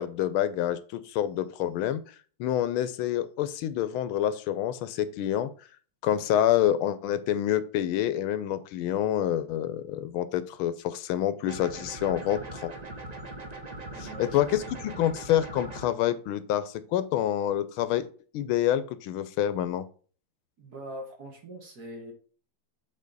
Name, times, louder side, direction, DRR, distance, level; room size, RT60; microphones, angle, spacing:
voice 1, 0.0-2.0 2.4-5.5 6.0-12.7 14.2-18.1 18.3-19.9, left 11 dB, 80° left, 13 dB, 1.4 m, -27 dB
sound 1, 11.5-15.9, right 2 dB, 35° right, 0.7 m, -40 dB
voice 2, 13.9-14.6 20.6-22.1, right 1 dB, 50° right, 2 dB, 2.0 m, -42 dB
7.4 x 3.9 x 4.0 m, 0.40 s
omnidirectional pair, 2.3 m